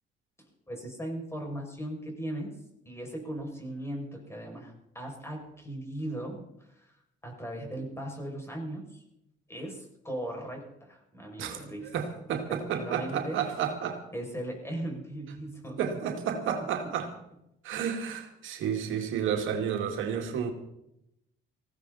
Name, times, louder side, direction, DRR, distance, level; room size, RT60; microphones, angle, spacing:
voice 1, 0.7-2.5 2.8-7.0 7.2-9.0 9.5-11.9 12.5-13.4 14.1-15.8 16.3-16.4, right 1 dB, 15° left, 1 dB, 6.6 m, -38 dB
voice 2, 11.4-14.0 15.8-17.1 17.6-20.5, right 8 dB, 80° right, 4 dB, 2.3 m, -31 dB
20.0 x 16.0 x 4.2 m, 0.82 s
cardioid pair, 90°, 20 cm